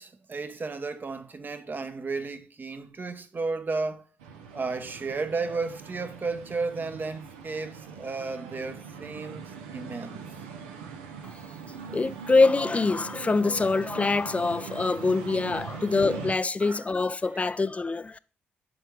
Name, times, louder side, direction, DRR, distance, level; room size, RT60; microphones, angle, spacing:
voice 1, 0.0-4.1 4.5-10.2 16.6-16.9 17.3-17.5, right 3 dB, 40° right, 0.8 m, -33 dB
sound 1, 4.2-16.4, right 6 dB, 90° right, 0.5 m, -41 dB
voice 2, 11.9-18.2, left 3 dB, 25° left, 0.3 m, -24 dB
9.0 x 3.5 x 3.1 m
hypercardioid pair, 40°, 5 cm